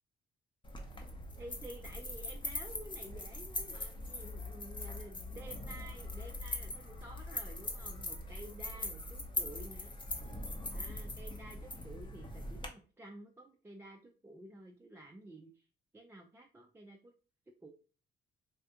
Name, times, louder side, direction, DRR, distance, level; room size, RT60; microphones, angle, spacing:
sound 1, 0.6-12.7, left 2 dB, 25° left, 0.7 m, -41 dB
voice 1, 1.4-9.9 10.7-15.6 15.9-17.1 17.6-17.7, right 1 dB, 10° right, 0 dB, 0.4 m, -52 dB
3.4 x 2.3 x 2.7 m, 0.35 s
cardioid pair, 90°, 20 cm